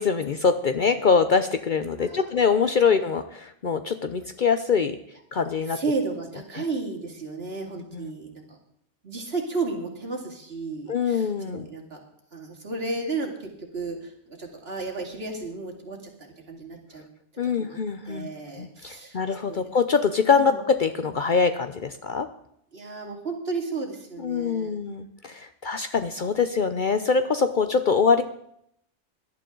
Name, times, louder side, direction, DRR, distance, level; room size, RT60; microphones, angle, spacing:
voice 1, 0.0-5.0 5.3-5.8 6.6-6.7 7.9-8.1 10.9-11.7 17.4-22.3 24.2-28.2, left 5 dB, 50° left, 9 dB, 0.7 m, -24 dB
voice 2, 2.0-2.3 5.7-8.6 9.0-12.0 12.3-17.0 17.6-17.8 18.1-19.2 19.5-19.7 20.3-20.6 22.7-24.8, right 3 dB, 55° right, 0 dB, 2.7 m, -33 dB
18.0 x 11.5 x 3.8 m, 0.72 s
omnidirectional pair, 1.2 m